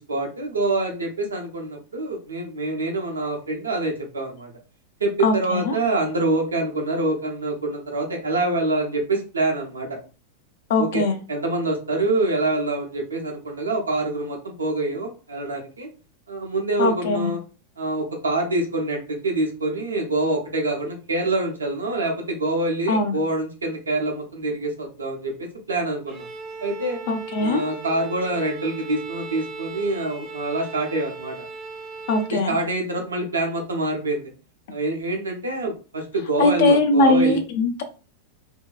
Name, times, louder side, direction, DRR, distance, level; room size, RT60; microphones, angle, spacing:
voice 1, 0.0-4.5 5.0-9.9 10.8-11.0 11.3-15.9 16.3-17.4 17.8-26.2 26.6-27.0 27.4-31.3 32.3-34.3 34.7-37.4, right 2 dB, 75° right, 1 dB, 0.7 m, -26 dB
voice 2, 5.2-5.8 10.7-11.1 16.8-17.3 22.9-23.2 27.1-27.6 32.1-32.6 36.4-37.8, left 2 dB, 55° left, 6 dB, 0.5 m, -20 dB
Bowed string instrument, 26.1-32.4, right 3 dB, 30° right, 0.6 m, -37 dB
2.7 x 2.2 x 2.4 m, 0.35 s
figure-of-eight pair, 90°, 0 cm